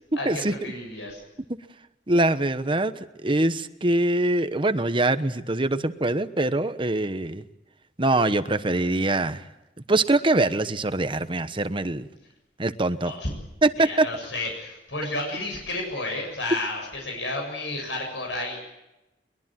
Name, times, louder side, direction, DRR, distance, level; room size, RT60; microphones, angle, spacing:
voice 1, 0.1-1.2 13.0-13.3 13.8-18.6, left 2 dB, 85° left, 1 dB, 7.5 m, -31 dB
voice 2, 2.1-2.9 3.2-7.4 8.0-9.4 9.9-12.1 12.6-13.1 13.6-14.1, right 2 dB, 30° right, 11 dB, 1.1 m, -23 dB
23.0 x 22.0 x 7.6 m, 0.95 s
head